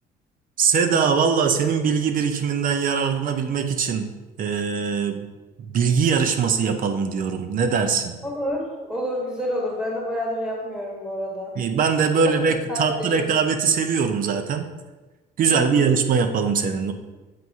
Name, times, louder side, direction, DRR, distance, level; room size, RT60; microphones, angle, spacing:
voice 1, 0.6-4.1 4.4-5.3 5.6-8.1 11.6-14.7 15.4-16.9, right 6 dB, 55° right, 7 dB, 0.7 m, -22 dB
voice 2, 8.2-11.5 12.7-13.3 15.5-15.9, equal, 5° right, -3 dB, 1.5 m, -29 dB
7.7 x 2.7 x 4.7 m, 1.2 s
cardioid pair, 110°, 17 cm